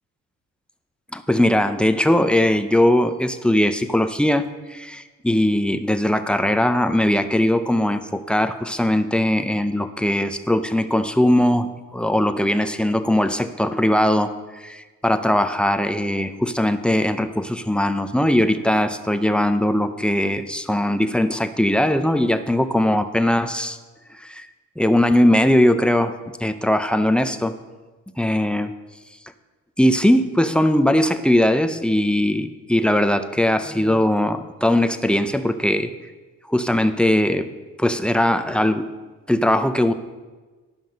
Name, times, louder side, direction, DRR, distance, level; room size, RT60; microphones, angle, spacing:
voice 1, 1.1-23.8 24.2-24.5 24.8-26.1 26.4-27.5 28.2-28.7 29.8-35.9 36.5-37.5 37.8-38.9 39.3-39.9, left 1 dB, 5° left, 8 dB, 0.5 m, -20 dB
11.5 x 5.8 x 5.2 m, 1.3 s
cardioid pair, 90°, 30 cm